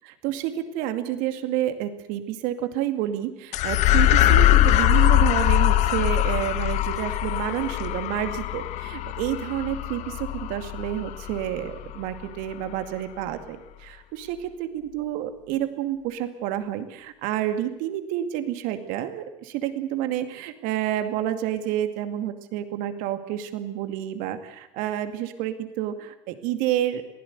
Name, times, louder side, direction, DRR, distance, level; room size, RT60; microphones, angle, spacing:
voice 1, 0.2-27.0, right 12 dB, 60° right, 9 dB, 2.3 m, -29 dB
sound 1, 3.5-12.2, left 14 dB, 50° left, 1.1 m, -22 dB
22.5 x 16.0 x 8.2 m, 0.90 s
hypercardioid pair, 90°, 15 cm